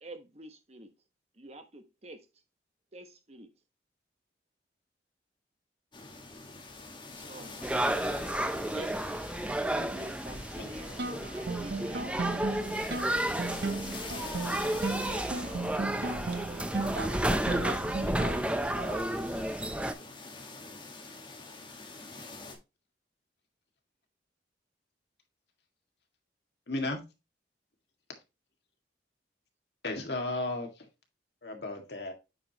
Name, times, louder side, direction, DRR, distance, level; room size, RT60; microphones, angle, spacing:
voice 1, 0.0-0.9 1.4-2.3 2.9-3.5 7.1-7.5 8.5-9.1 9.4-11.0 11.3-12.4 14.0-17.6 19.8-20.1, right 1 dB, 35° right, 1.1 m, -48 dB
sound 1, 5.9-22.5, left 3 dB, 25° left, 1.5 m, -46 dB
sound 2, 7.6-19.9, right 1 dB, 5° right, 0.5 m, -32 dB
sound 3, 11.0-18.6, right 3 dB, 65° right, 0.8 m, -36 dB
voice 2, 16.9-19.5, right 3 dB, 85° right, 2.3 m, -42 dB
voice 3, 26.7-27.0 29.8-30.9 31.4-32.1, left 2 dB, 65° left, 1.8 m, -34 dB
8.9 x 5.0 x 2.9 m
head